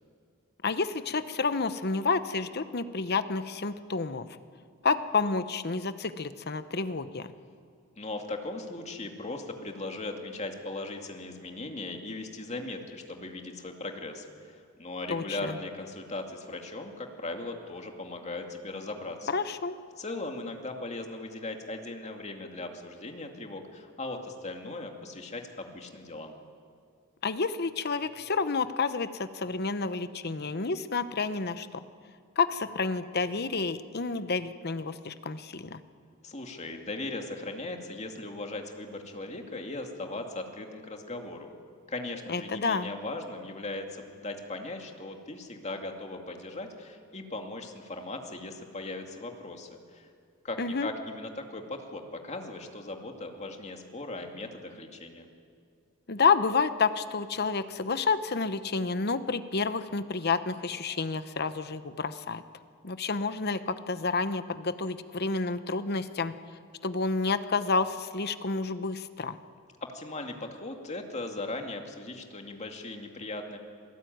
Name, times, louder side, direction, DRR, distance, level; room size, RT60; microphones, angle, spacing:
voice 1, 0.6-4.3 4.8-7.3 15.1-15.6 19.3-19.8 27.2-31.8 32.4-35.8 42.3-42.9 50.6-50.9 56.1-62.4 62.8-66.3 66.8-69.4, left 4 dB, 50° left, 12 dB, 0.9 m, -29 dB
voice 2, 8.0-19.3 20.0-26.3 36.2-41.5 41.9-50.1 50.4-55.3 69.8-73.6, left 2 dB, 30° left, 3 dB, 2.4 m, -38 dB
27.0 x 19.0 x 9.4 m, 2.2 s
head